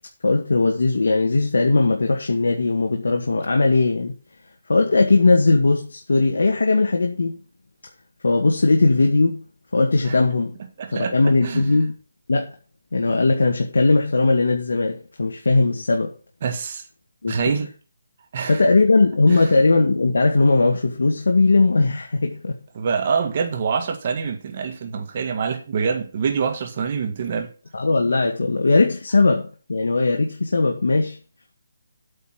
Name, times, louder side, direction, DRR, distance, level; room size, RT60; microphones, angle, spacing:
voice 1, 0.2-4.1 4.7-7.4 8.2-9.4 9.7-10.6 10.9-11.9 12.3-12.5 12.9-16.1 17.2-17.4 18.5-22.6 27.7-31.2, left 3 dB, 85° left, 1.9 m, -19 dB
voice 2, 10.8-11.2 11.4-11.6 16.4-16.8 17.3-17.7 18.3-18.6 19.3-19.6 22.7-27.5, right 6 dB, 30° right, 1.8 m, -25 dB
8.8 x 5.5 x 7.6 m
hypercardioid pair, 175°, 0 cm